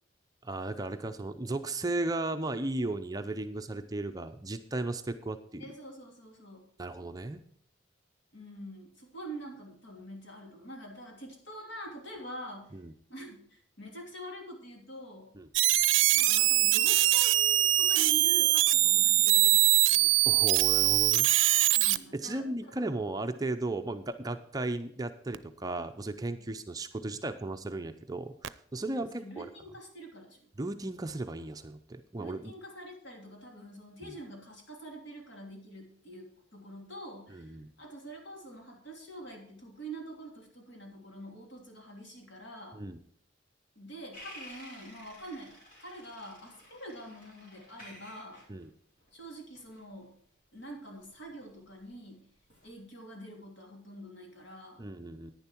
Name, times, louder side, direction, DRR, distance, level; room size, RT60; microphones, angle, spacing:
voice 1, 0.4-5.7 6.8-7.4 12.7-12.9 15.3-15.5 20.3-21.3 22.1-29.5 30.6-32.5 34.0-34.2 37.3-37.7 42.7-43.0 48.5-48.7 54.8-55.3, right 2 dB, 20° right, 7 dB, 0.5 m, -35 dB
voice 2, 5.6-6.7 8.3-12.8 13.1-15.3 16.1-20.1 21.7-22.8 28.9-30.5 32.2-42.8 43.7-48.5 49.1-50.2 50.5-52.3 52.6-54.8, right 1 dB, 65° left, 0 dB, 3.0 m, -46 dB
sound 1, 15.5-22.0 25.3-25.4 28.4-28.5, right 16 dB, 85° right, 0.5 m, -23 dB
sound 2, 44.1-51.9 52.4-52.8, left 1 dB, 45° left, 3.8 m, -52 dB
10.5 x 9.8 x 4.5 m, 0.64 s
head